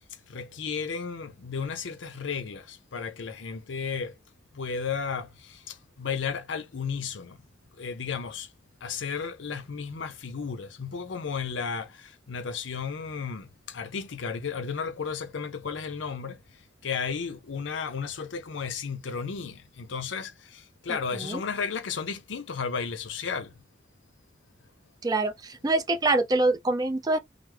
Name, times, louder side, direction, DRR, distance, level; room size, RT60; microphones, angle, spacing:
voice 1, 0.3-4.1 4.5-7.4 7.8-8.5 8.8-16.4 16.8-23.5, left 6 dB, 70° left, 0.6 m, -34 dB
voice 2, 25.0-27.2, right 2 dB, 20° right, 0.4 m, -25 dB
3.2 x 2.0 x 3.4 m
head